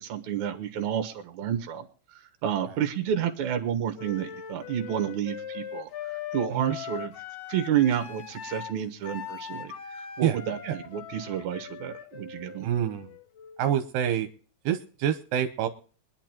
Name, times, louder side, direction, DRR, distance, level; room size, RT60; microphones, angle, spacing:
voice 1, 0.1-1.9 2.4-5.9 6.3-7.1 7.5-10.6 10.9-12.7, right 9 dB, 60° right, 5 dB, 2.5 m, -30 dB
Wind instrument woodwind instrument, 4.0-13.8, left 8 dB, 70° left, 3.0 m, -40 dB
voice 2, 12.6-13.1 13.6-14.3 14.6-15.7, right 10 dB, 80° right, 8 dB, 2.6 m, -27 dB
23.5 x 10.5 x 3.0 m, 0.41 s
omnidirectional pair, 4.1 m